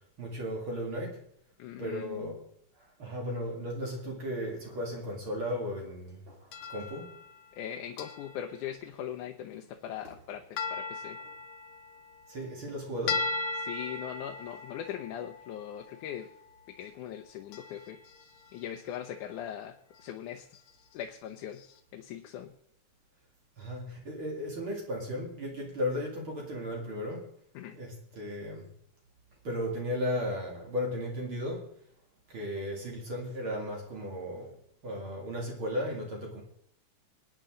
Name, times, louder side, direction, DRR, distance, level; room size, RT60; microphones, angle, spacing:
voice 1, 0.2-1.2 1.8-2.4 2.7-7.2 10.0-10.1 12.3-13.3 23.6-27.3 27.7-28.7 29.4-31.7 32.3-34.6 34.8-36.4, equal, 45° right, -1 dB, 3.1 m, -35 dB
voice 2, 1.6-2.3 7.5-10.4 10.7-11.2 13.6-16.3 16.7-18.0 18.5-20.5 20.9-21.6 21.9-22.5 27.5-27.8, left 10 dB, 85° left, 4 dB, 2.3 m, -40 dB
sound 1, 6.5-7.6 8.0-8.6 10.6-12.7 13.1-16.2 17.5-18.6 18.9-19.5 19.9-20.1 20.5-20.7 21.6-21.7, left 3 dB, 65° left, 2.1 m, -38 dB
23.0 x 9.5 x 3.8 m, 0.70 s
omnidirectional pair, 3.4 m